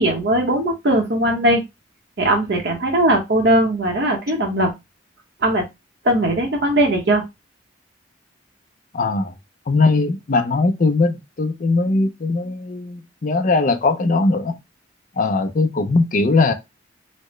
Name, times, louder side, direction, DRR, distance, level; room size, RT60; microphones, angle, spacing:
voice 1, 0.0-1.6 2.2-4.7 5.4-5.6 6.0-7.2, right 1 dB, 60° right, 0.8 m, -19 dB
voice 2, 8.9-9.3 9.7-14.5 15.2-16.5, left 3 dB, 45° left, 0.5 m, -19 dB
4.2 x 2.1 x 3.0 m
head